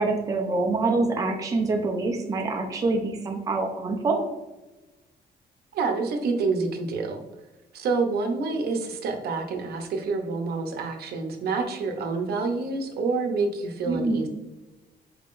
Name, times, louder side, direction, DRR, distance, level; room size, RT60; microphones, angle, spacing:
voice 1, 0.0-4.2 13.8-14.2, right 3 dB, 20° right, 2 dB, 0.5 m, -25 dB
voice 2, 5.7-7.2 7.7-14.3, right 4 dB, 70° right, 3 dB, 0.7 m, -27 dB
4.6 x 3.7 x 2.5 m, 1.1 s
cardioid pair, 170°, 17 cm